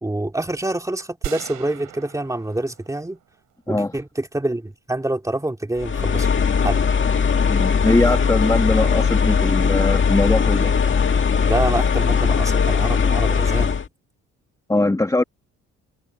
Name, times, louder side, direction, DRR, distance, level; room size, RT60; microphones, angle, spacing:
voice 1, 0.0-3.2 3.7-6.3 6.6-6.8 11.5-13.8, right 1 dB, 10° right, 2.7 m, -26 dB
sound 1, 1.2-3.6, right 12 dB, 80° right, 4.9 m, -36 dB
sound 2, 5.8-13.9, left 6 dB, 40° left, 2.0 m, -19 dB
voice 2, 7.5-10.7 14.7-15.2, left 2 dB, 10° left, 1.6 m, -21 dB
cardioid pair, 90°, 30 cm